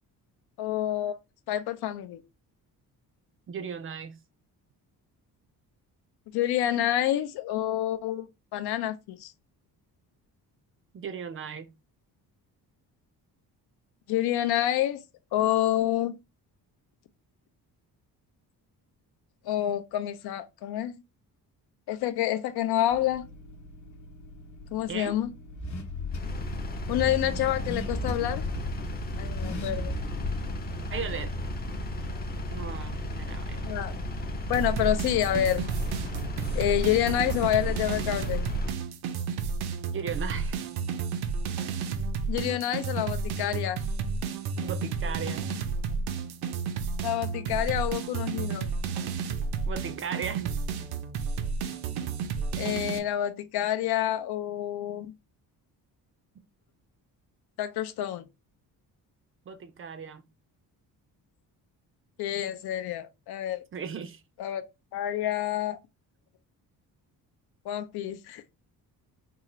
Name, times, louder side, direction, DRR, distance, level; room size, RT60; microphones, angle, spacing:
voice 1, 0.6-1.2 1.5-2.2 6.3-9.3 14.1-15.0 15.3-16.2 19.4-21.0 21.9-23.3 24.7-25.3 26.9-28.5 29.2-29.9 33.6-33.9 34.5-35.7 36.5-38.4 42.3-43.8 47.0-48.7 52.5-55.1 57.6-58.2 62.2-63.6 64.4-64.6 64.9-65.8 67.6-68.4, left 12 dB, 85° left, 0.6 m, -28 dB
voice 2, 3.5-4.2 10.9-11.7 24.9-25.1 30.9-31.4 32.5-33.8 39.9-40.7 44.6-45.5 49.7-50.6 59.5-60.2 63.7-64.2, right 6 dB, 35° right, 0.4 m, -37 dB
Car / Accelerating revving vroom, 22.9-32.1, left 2 dB, 50° left, 0.8 m, -38 dB
Engine, 26.1-38.8, left 1 dB, 25° left, 0.5 m, -34 dB
sound 1, 34.5-53.0, right 5 dB, 90° right, 0.6 m, -32 dB
3.8 x 2.4 x 3.0 m
cardioid pair, 145°, 38 cm